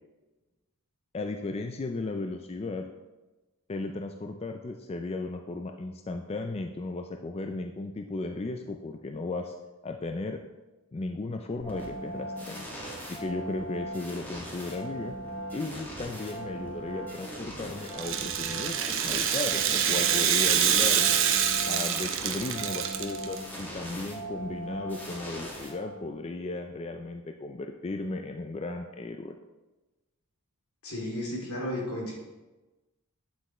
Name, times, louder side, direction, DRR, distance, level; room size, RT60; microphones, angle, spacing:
voice 1, 1.1-2.9 3.7-9.5 9.8-10.4 10.9-12.7 13.1-15.1 15.5-21.2 21.7-29.3, left 3 dB, 25° left, 5 dB, 0.4 m, -35 dB
sound 1, 11.6-26.2, right 1 dB, 10° left, 1.7 m, -39 dB
Rattle (instrument), 17.9-23.4, right 9 dB, 60° right, 0.7 m, -26 dB
voice 2, 30.8-32.2, left 1 dB, 80° left, -3 dB, 2.7 m, -33 dB
8.9 x 8.0 x 3.1 m, 1.1 s
head